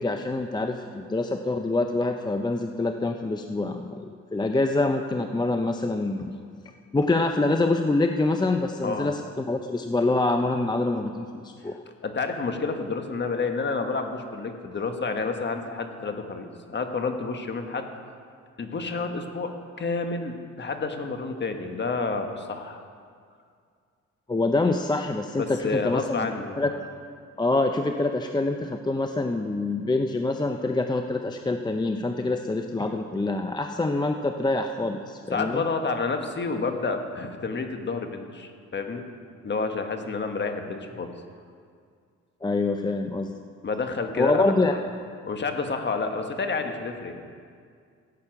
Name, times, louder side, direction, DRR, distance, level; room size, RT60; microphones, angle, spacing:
voice 1, 0.0-6.4 6.9-11.8 24.3-26.7 27.4-35.6 42.4-43.3 44.2-44.7, left 2 dB, 15° left, 5 dB, 0.6 m, -26 dB
voice 2, 12.0-17.9 18.6-19.5 19.8-22.8 25.4-26.7 35.3-39.1 39.4-41.1 43.6-44.4 44.7-44.9 45.2-47.2, left 4 dB, 35° left, 5 dB, 1.4 m, -29 dB
15.5 x 8.4 x 5.9 m, 2.2 s
cardioid pair, 90°, 30 cm